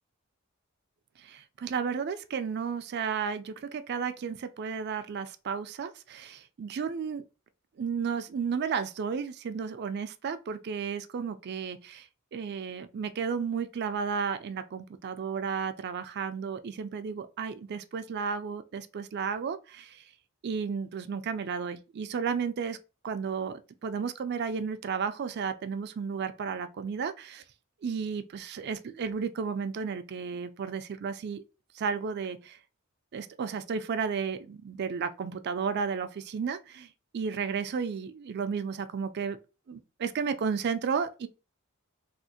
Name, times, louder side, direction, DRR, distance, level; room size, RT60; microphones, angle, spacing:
voice 1, 1.2-7.2 7.8-20.0 20.4-22.8 23.0-27.4 27.8-31.4 31.7-32.6 33.1-36.9 37.1-39.4 39.7-41.3, right 6 dB, 55° right, 0.4 m, -33 dB
3.5 x 2.4 x 2.7 m
head